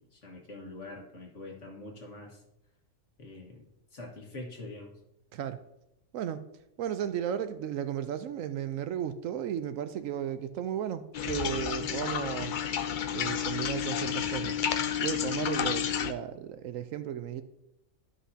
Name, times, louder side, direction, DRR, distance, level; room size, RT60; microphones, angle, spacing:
voice 1, 0.1-2.4 3.2-3.6 3.9-4.9, left 2 dB, 60° left, 0 dB, 1.8 m, -44 dB
voice 2, 6.8-12.5 13.1-14.6 15.0-17.4, right 9 dB, 70° right, 11 dB, 0.9 m, -34 dB
sound 1, 11.1-16.1, left 8 dB, 90° left, 0.4 m, -31 dB
12.5 x 5.8 x 2.8 m, 0.83 s
omnidirectional pair, 1.5 m